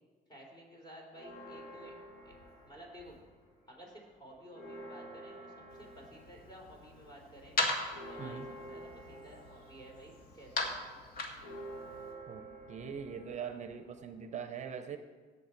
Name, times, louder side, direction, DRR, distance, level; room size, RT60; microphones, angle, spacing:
voice 1, 0.3-1.9 2.2-2.3 2.6-3.2 3.7-7.6 8.1-10.9, equal, 25° left, 0 dB, 3.4 m, -53 dB
Church bell, 1.1-3.5 3.9-4.0 4.3-14.3, right 1 dB, 80° left, 4.2 m, -50 dB
sound 1, 5.7-12.1, left 2 dB, 55° left, 1.8 m, -39 dB
voice 2, 8.2-8.5 12.3-15.0, right 7 dB, 45° right, 8 dB, 0.7 m, -42 dB
16.5 x 7.0 x 4.4 m, 1.5 s
cardioid pair, 110°, 17 cm